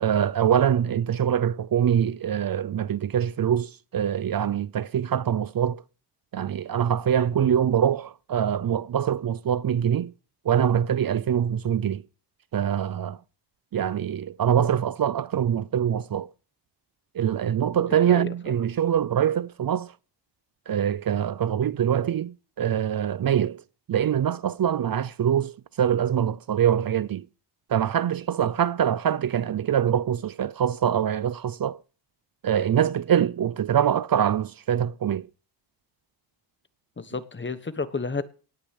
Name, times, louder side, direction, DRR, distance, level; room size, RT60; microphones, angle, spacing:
voice 1, 0.0-5.8 6.3-10.1 10.5-12.0 12.5-13.2 13.7-16.3 17.1-19.9 20.7-23.6 23.9-27.3 27.7-31.8 32.4-35.3, right 9 dB, 55° right, 0.6 m, -24 dB
voice 2, 17.9-18.3 37.0-38.2, left 4 dB, 25° left, 1.1 m, -32 dB
18.0 x 6.6 x 8.1 m
wide cardioid pair, 150°, 44 cm